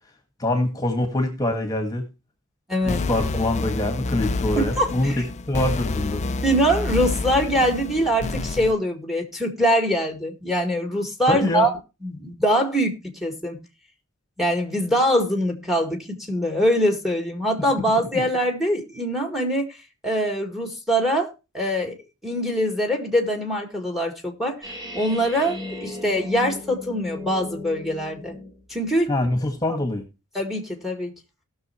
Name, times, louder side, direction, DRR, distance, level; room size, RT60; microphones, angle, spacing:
voice 1, 0.4-2.1 2.8-6.2 11.3-11.7 29.1-30.0, left 1 dB, 15° left, 1.6 m, -24 dB
voice 2, 2.7-3.0 4.6-5.2 6.4-11.7 12.0-13.6 14.4-19.8 20.0-22.0 22.2-24.7 24.9-28.4 28.7-29.1 30.3-31.1, equal, ahead, 1.9 m, -23 dB
sound 1, 2.8-8.7, left 3 dB, 30° left, 0.5 m, -28 dB
sound 2, 24.6-28.6, left 2 dB, 20° right, 4.0 m, -36 dB
19.0 x 6.5 x 2.9 m
head